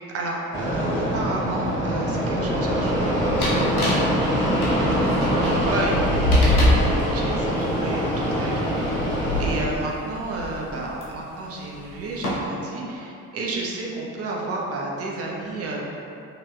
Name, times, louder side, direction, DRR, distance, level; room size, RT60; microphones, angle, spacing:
voice 1, 0.1-9.1 9.4-16.0, right 2 dB, 35° right, -2 dB, 0.5 m, -32 dB
Fixed-wing aircraft airplane, 0.5-9.6, equal, 55° right, 1.1 m, -24 dB
sound 1, 3.2-11.0 11.7-12.3, left 1 dB, 90° left, 0.6 m, -25 dB
3.0 x 2.7 x 2.3 m, 2.7 s
figure-of-eight pair, 45°, 43 cm